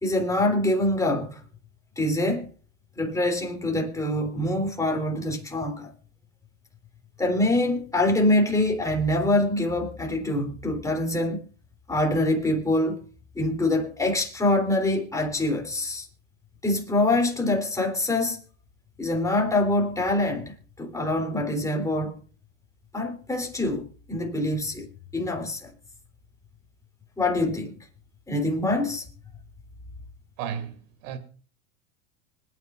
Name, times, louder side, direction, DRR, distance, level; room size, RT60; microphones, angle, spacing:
voice 1, 0.0-1.4 2.0-2.5 3.0-5.9 7.2-11.4 11.9-13.0 13.3-16.1 16.6-18.4 19.0-22.1 22.9-24.9 25.1-25.7 27.2-27.7 28.3-29.0, left 1 dB, 10° left, 3.3 m, -25 dB
voice 2, 30.4-31.2, right 8 dB, 65° right, 2.7 m, -34 dB
25.5 x 9.3 x 2.5 m
supercardioid pair, 125°, 40 cm